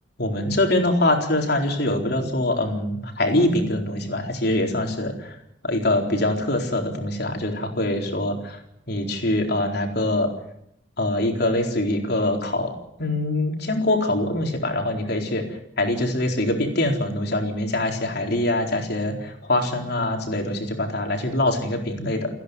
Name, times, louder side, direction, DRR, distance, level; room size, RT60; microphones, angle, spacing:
voice 1, 0.2-5.4 5.6-8.6 8.9-10.3 11.0-12.7 13.0-22.3, left 1 dB, 60° left, 2 dB, 4.2 m, -24 dB
29.5 x 10.5 x 9.6 m, 0.77 s
head